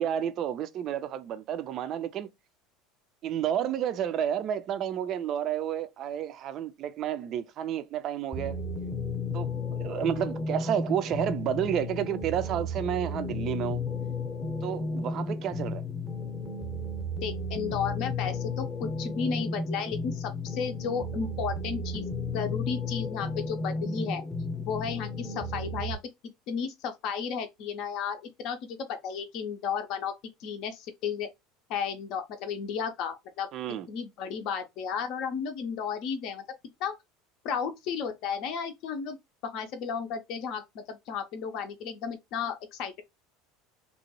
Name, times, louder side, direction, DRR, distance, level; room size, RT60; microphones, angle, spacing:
voice 1, 0.0-2.3 3.2-8.6 9.3-13.8 14.6-15.8 33.5-33.9, right 9 dB, 45° right, 0.4 m, -31 dB
sound 1, 8.3-26.0, left 2 dB, 15° left, 0.7 m, -33 dB
voice 2, 17.2-22.1 22.3-24.2 24.6-26.0 26.5-30.1 30.4-31.3 31.7-33.5 33.9-36.4 36.8-37.0 37.4-39.2 39.4-43.0, left 6 dB, 55° left, 0.5 m, -33 dB
2.8 x 2.2 x 2.9 m
figure-of-eight pair, 70°, 0 cm